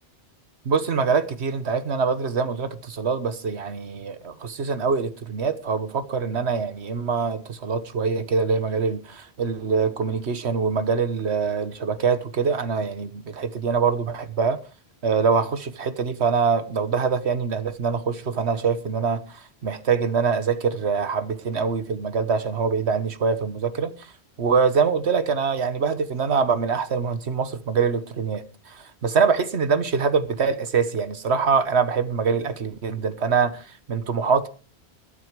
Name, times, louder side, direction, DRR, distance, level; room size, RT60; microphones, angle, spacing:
voice 1, 0.6-14.6 15.0-24.1 24.4-34.5, right 5 dB, 90° right, 1.5 m, -24 dB
21.0 x 8.6 x 4.7 m
omnidirectional pair, 1.1 m